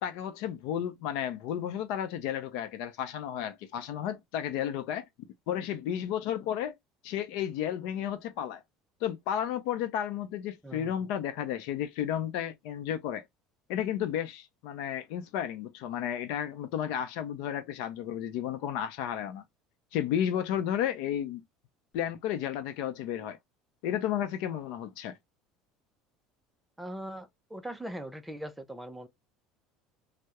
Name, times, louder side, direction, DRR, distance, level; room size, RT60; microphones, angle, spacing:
voice 1, 0.0-5.1 5.5-6.7 7.0-8.6 9.0-13.2 13.7-19.4 19.9-21.4 21.9-23.4 23.8-25.1, left 10 dB, 65° left, 0.5 m, -32 dB
voice 2, 10.6-11.1 26.8-29.1, right 1 dB, 5° right, 0.4 m, -41 dB
2.3 x 2.0 x 2.8 m
cardioid pair, 170°, 0 cm